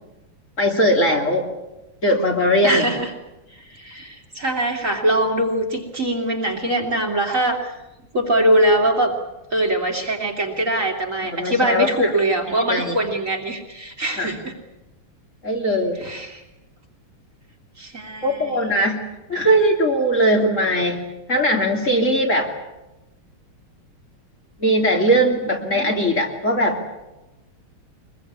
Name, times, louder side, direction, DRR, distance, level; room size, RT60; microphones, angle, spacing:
voice 1, 0.6-1.5 2.0-2.9 11.2-12.1 12.5-12.9 14.2-14.3 15.4-16.0 18.2-19.0 19.3-21.0 21.3-22.5 24.6-26.8, equal, 35° left, 0 dB, 3.3 m, -20 dB
voice 2, 2.6-3.1 3.7-7.6 8.1-9.1 9.5-14.5 16.0-16.4 17.8-18.6 25.6-25.9, right 1 dB, 35° right, 1 dB, 3.1 m, -22 dB
24.0 x 22.0 x 8.6 m, 0.98 s
omnidirectional pair, 2.4 m